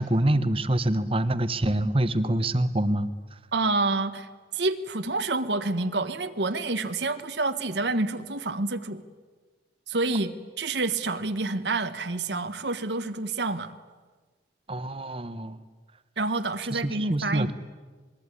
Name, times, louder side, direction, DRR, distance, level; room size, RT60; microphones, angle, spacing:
voice 1, 0.0-3.1 14.7-15.6 16.7-17.5, right 1 dB, 30° right, 13 dB, 1.2 m, -25 dB
voice 2, 3.5-9.0 9.9-13.7 16.2-17.5, right 3 dB, 80° right, 8 dB, 1.4 m, -28 dB
26.5 x 22.0 x 9.9 m, 1.4 s
head